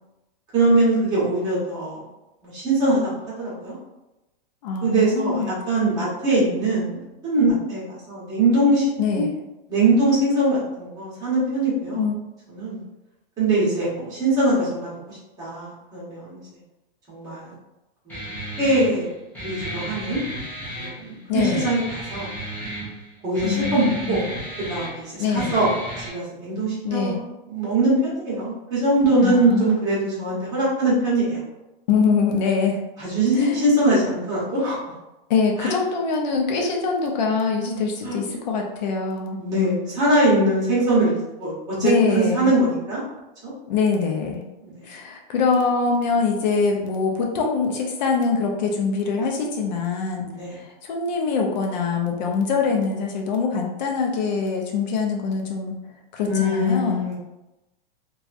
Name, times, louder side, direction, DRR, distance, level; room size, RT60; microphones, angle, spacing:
voice 1, 0.5-2.0 2.4-3.0 3.4-3.7 4.8-8.8 9.1-9.2 9.7-12.0 12.5-12.8 13.4-16.4 17.1-17.5 18.0-19.1 19.4-20.2 20.8-22.3 23.2-24.2 24.6-25.7 26.0-27.1 27.5-31.4 33.0-34.8 35.6-35.7 37.7-38.2 39.4-43.0 43.4-43.5 44.6-44.9 50.2-50.5 56.3-57.1, right 1 dB, 15° right, -8 dB, 1.0 m, -22 dB
voice 2, 4.6-5.5 5.8-6.0 9.0-9.3 11.9-12.2 21.3-21.7 23.4-24.3 25.2-25.5 26.8-27.2 29.2-29.8 31.9-32.8 33.3-33.7 35.3-39.4 41.8-42.5 43.7-44.5 44.8-55.8 56.1-57.0, left 5 dB, 50° left, 1 dB, 0.6 m, -24 dB
Guitar, 18.1-26.1, equal, 5° left, 0.5 m, -34 dB
2.9 x 2.3 x 2.4 m, 0.99 s
supercardioid pair, 160°, 29 cm